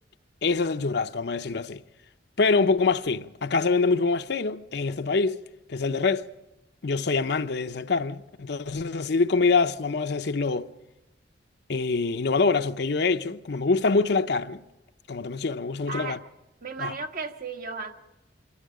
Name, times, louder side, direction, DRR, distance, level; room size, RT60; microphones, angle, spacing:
voice 1, 0.4-1.8 2.4-5.4 5.7-6.3 6.8-10.7 11.7-14.6 15.1-16.2 16.8-16.9, left 4 dB, 65° left, 0.7 m, -25 dB
voice 2, 15.9-16.2 16.6-17.9, right 4 dB, 50° right, 1.5 m, -34 dB
27.0 x 13.0 x 9.9 m
head